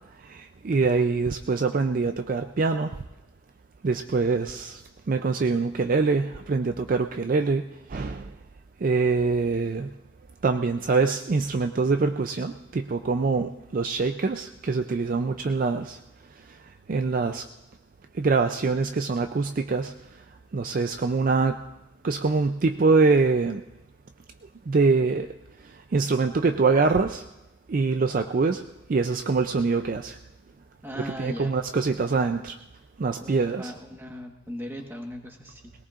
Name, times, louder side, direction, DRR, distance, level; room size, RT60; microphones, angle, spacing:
voice 1, 0.2-2.9 3.8-4.8 5.1-7.6 7.9-8.3 8.8-9.9 10.4-16.0 16.9-17.4 18.2-19.9 20.5-21.6 22.0-23.6 24.7-25.3 25.9-27.2 27.7-28.6 28.9-30.2 31.2-32.6 33.0-33.7, right 4 dB, 40° right, 7 dB, 0.4 m, -24 dB
voice 2, 30.8-31.5 32.0-32.1 33.2-35.7, equal, 10° right, 2 dB, 1.3 m, -38 dB
21.0 x 18.0 x 2.5 m, 0.97 s
head